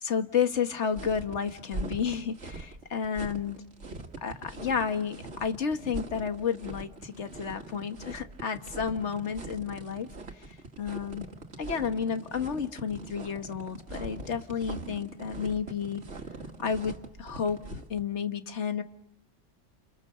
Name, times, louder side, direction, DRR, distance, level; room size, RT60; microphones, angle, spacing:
voice 1, 0.0-3.6 4.2-10.1 10.4-11.3 11.6-16.0 16.6-18.8, left 7 dB, 75° left, 9 dB, 1.6 m, -31 dB
sound 1, 0.9-18.0, right 3 dB, 75° right, 2.3 m, -42 dB
29.5 x 28.5 x 6.6 m, 0.83 s
omnidirectional pair, 1.2 m